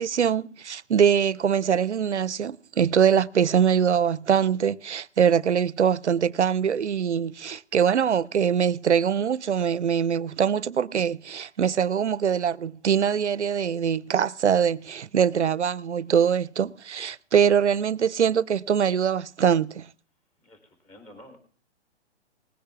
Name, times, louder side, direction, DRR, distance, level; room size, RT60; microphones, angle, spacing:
voice 1, 0.0-19.9, right 8 dB, 90° right, 0.6 m, -23 dB
voice 2, 20.8-21.4, left 1 dB, 20° left, 3.6 m, -48 dB
19.5 x 10.0 x 3.5 m
figure-of-eight pair, 130°, 34 cm